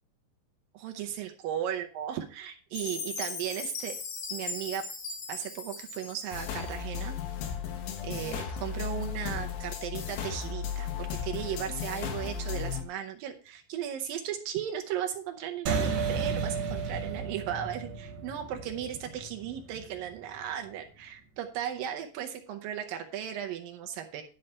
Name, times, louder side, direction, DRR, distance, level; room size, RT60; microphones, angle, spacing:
voice 1, 0.7-4.0 4.3-4.9 5.3-7.2 8.0-24.2, right 10 dB, 85° right, 4 dB, 2.0 m, -36 dB
Chime, 2.7-7.0, left 4 dB, 50° left, 2.0 m, -39 dB
sound 1, 6.3-12.8, left 7 dB, 75° left, 3.3 m, -35 dB
sound 2, 15.7-20.5, right 5 dB, 60° right, 2.8 m, -33 dB
11.0 x 5.5 x 5.5 m, 0.36 s
omnidirectional pair, 5.1 m